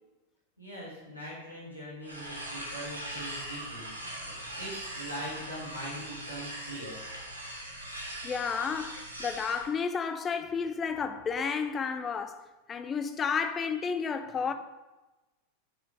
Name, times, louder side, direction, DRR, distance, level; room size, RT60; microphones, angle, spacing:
voice 1, 0.6-7.0, equal, 90° left, 2.5 m, -42 dB
sound 1, 2.0-9.7, right 1 dB, 85° right, 1.4 m, -41 dB
voice 2, 8.2-14.5, left 6 dB, 20° left, 0.5 m, -32 dB
10.0 x 4.7 x 3.4 m
figure-of-eight pair, 90°, 0 cm